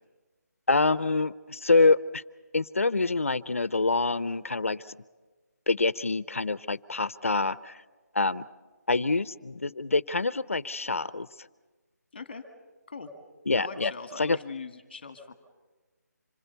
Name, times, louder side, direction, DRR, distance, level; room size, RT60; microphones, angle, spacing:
voice 1, 0.7-2.2 2.5-4.8 5.7-7.7 8.1-8.4 8.9-11.3 13.5-13.9 14.2-14.4, left 3 dB, 50° left, 18 dB, 0.6 m, -26 dB
voice 2, 12.1-12.4 12.9-13.1 13.5-15.3, left 4 dB, 20° left, 7 dB, 1.5 m, -40 dB
26.5 x 21.0 x 6.8 m, 1.3 s
figure-of-eight pair, 180°, 9 cm